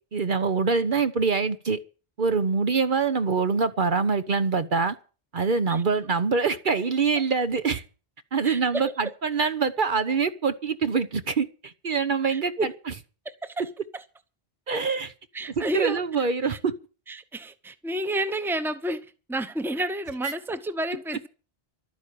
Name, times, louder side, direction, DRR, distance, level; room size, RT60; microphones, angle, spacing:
voice 1, 0.1-1.8 2.2-4.9 5.3-7.8 8.3-12.5 14.7-15.1 15.6-16.7 20.2-20.3, right 5 dB, 55° right, 1.0 m, -24 dB
voice 2, 8.4-8.9 12.3-12.7 13.2-14.0 15.3-16.0 16.4-16.6 17.1-21.3, right 1 dB, ahead, 0.9 m, -30 dB
12.5 x 9.4 x 8.5 m
omnidirectional pair, 1.1 m